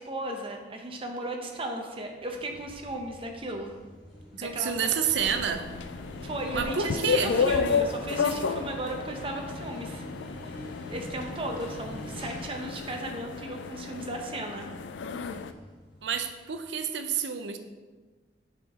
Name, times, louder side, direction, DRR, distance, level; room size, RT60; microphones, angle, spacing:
voice 1, 0.0-3.7 4.4-4.9 5.2-5.3 6.2-10.0 10.5-10.6 10.9-14.7, right 1 dB, 30° right, 2 dB, 0.8 m, -36 dB
sound 1, 2.1-16.6, equal, 30° left, 1.7 m, -45 dB
voice 2, 4.3-5.7 6.5-7.3 16.0-17.6, right 7 dB, 75° right, 8 dB, 0.5 m, -29 dB
sound 2, 5.1-15.5, left 5 dB, 80° left, 0.4 m, -32 dB
7.9 x 4.4 x 3.6 m, 1.3 s
head